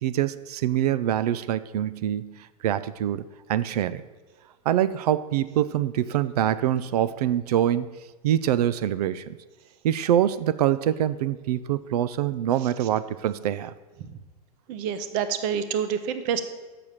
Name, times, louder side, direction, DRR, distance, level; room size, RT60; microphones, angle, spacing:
voice 1, 0.0-3.2 3.5-4.0 4.7-8.0 8.2-9.4 9.8-13.7, right 11 dB, 80° right, 16 dB, 0.4 m, -25 dB
voice 2, 14.7-16.4, right 8 dB, 30° right, 11 dB, 0.5 m, -27 dB
6.9 x 6.3 x 7.2 m, 1.3 s
supercardioid pair, 175°, 20 cm